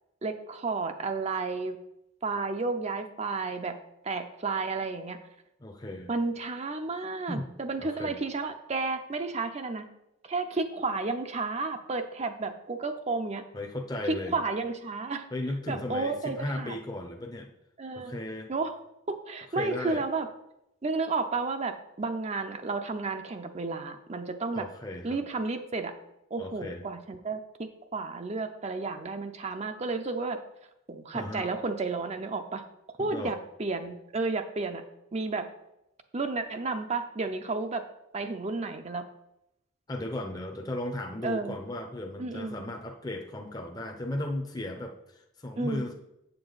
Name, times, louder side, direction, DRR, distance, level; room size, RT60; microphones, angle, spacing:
voice 1, 0.2-1.8 2.2-3.8 4.0-5.2 6.1-9.9 10.2-13.4 14.0-15.3 15.7-16.8 17.8-18.2 18.5-18.8 19.1-20.3 20.8-24.7 25.0-25.9 26.3-30.4 30.9-32.6 33.0-34.8 35.1-35.5 36.1-37.8 38.1-39.1 41.2-41.6 42.2-42.7 45.6-45.9, right 3 dB, 30° right, 7 dB, 0.5 m, -32 dB
voice 2, 5.6-6.1 7.3-7.4 8.0-8.2 13.5-14.4 15.3-17.5 17.9-18.5 19.6-20.0 24.5-25.2 26.4-26.8 31.1-31.5 33.0-33.3 39.9-45.9, left 1 dB, 20° left, 3 dB, 0.7 m, -36 dB
8.1 x 6.8 x 4.0 m, 0.85 s
head